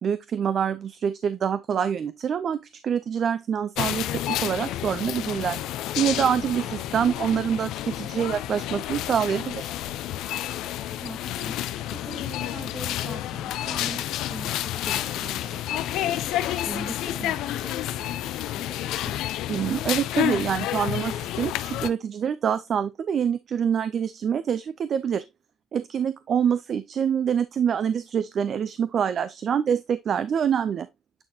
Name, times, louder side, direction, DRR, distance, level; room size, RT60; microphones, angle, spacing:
voice 1, 0.0-5.6 6.0-9.7 19.5-25.2 25.7-30.9, right 8 dB, 55° right, 0.5 m, -26 dB
sound 1, 3.8-21.9, left 13 dB, 85° left, 0.5 m, -30 dB
voice 2, 6.2-7.0 10.9-11.6 11.9-16.3 16.7-19.3, right 2 dB, 20° right, 1.6 m, -42 dB
8.9 x 4.1 x 2.8 m
cardioid pair, 100°, 0 cm